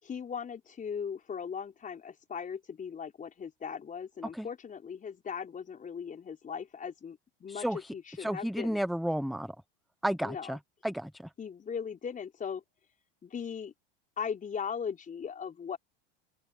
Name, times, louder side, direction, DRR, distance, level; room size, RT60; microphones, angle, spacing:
voice 1, 0.0-8.8 10.2-10.6 11.4-12.6 13.2-13.7 14.2-15.8, left 7 dB, 25° left, 4.6 m, -38 dB
voice 2, 7.5-9.6 10.0-11.3, right 1 dB, ahead, 0.9 m, -33 dB
open air
hypercardioid pair, 100°, 30 cm